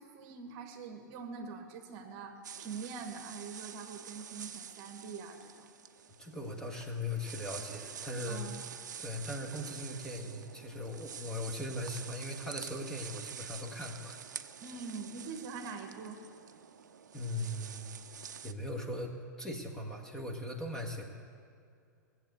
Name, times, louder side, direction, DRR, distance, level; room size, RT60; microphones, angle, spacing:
voice 1, 0.0-5.7 8.3-8.7 14.6-16.2, right 5 dB, 35° right, 5 dB, 1.3 m, -44 dB
sound 1, 2.4-18.5, right 7 dB, 65° right, 0.6 m, -47 dB
voice 2, 6.2-8.4 9.0-14.2 17.1-17.9 18.4-21.0, left 1 dB, 5° left, 2 dB, 1.5 m, -39 dB
18.0 x 7.8 x 8.1 m, 2.3 s
figure-of-eight pair, 105°, 10 cm